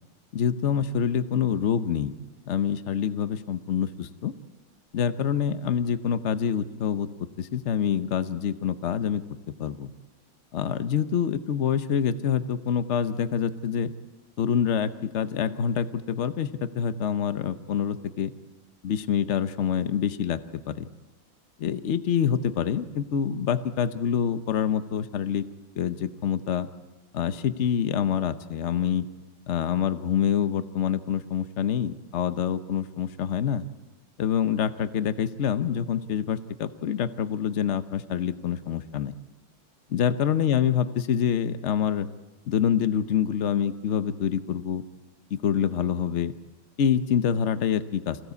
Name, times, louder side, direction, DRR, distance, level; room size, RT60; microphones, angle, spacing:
voice 1, 0.3-2.2 2.5-4.3 4.9-7.1 7.4-9.2 9.6-9.9 10.5-13.9 14.4-18.3 18.8-20.9 21.6-25.5 25.8-26.7 27.1-29.1 29.5-33.6 34.2-39.1 39.9-42.1 42.5-44.8 45.3-46.3 46.8-48.2, left 8 dB, 55° left, 11 dB, 0.8 m, -26 dB
26.0 x 16.0 x 8.3 m, 1.2 s
omnidirectional pair, 2.2 m